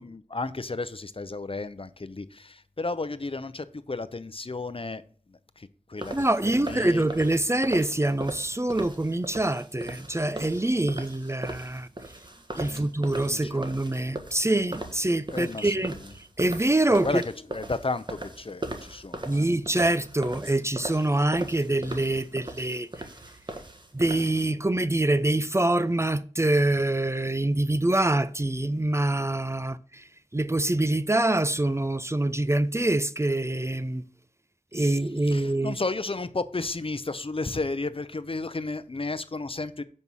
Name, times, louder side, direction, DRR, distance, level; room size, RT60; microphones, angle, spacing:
voice 1, 0.0-5.0 5.3-7.1 12.6-12.9 13.3-13.6 15.3-16.1 16.9-17.2 17.5-19.5 34.8-34.9 35.2-39.8, left 3 dB, 45° left, 0.6 m, -33 dB
sound 1, 6.0-24.5, right 1 dB, 40° right, 1.4 m, -39 dB
voice 2, 6.1-11.9 12.5-17.2 19.3-22.9 23.9-30.0 30.3-34.0 34.7-35.8, right 1 dB, 20° right, 0.5 m, -25 dB
7.0 x 5.5 x 6.2 m
wide cardioid pair, 40°, 13 cm